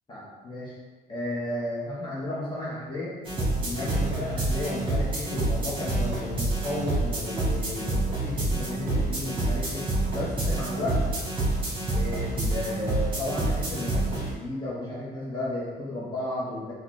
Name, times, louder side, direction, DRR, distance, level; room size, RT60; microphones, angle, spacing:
voice 1, 0.1-0.7 1.1-3.2 3.6-11.0 11.9-16.7, left 1 dB, 25° left, -8 dB, 1.0 m, -33 dB
sound 1, 3.3-14.3, right 2 dB, 30° right, 1.4 m, -28 dB
3.9 x 2.4 x 3.1 m, 1.3 s
cardioid pair, 110°, 17 cm